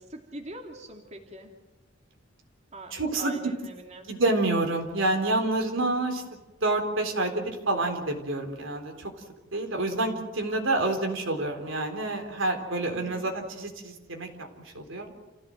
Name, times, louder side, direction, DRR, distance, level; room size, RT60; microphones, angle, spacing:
voice 1, 0.1-1.5 2.7-4.1 5.6-6.1 12.9-13.3, right 2 dB, 35° right, 1 dB, 2.7 m, -43 dB
voice 2, 2.9-3.3 4.1-6.2 6.6-9.1 9.5-15.1, right 2 dB, 80° right, 4 dB, 3.9 m, -28 dB
28.5 x 16.0 x 7.8 m, 1.1 s
head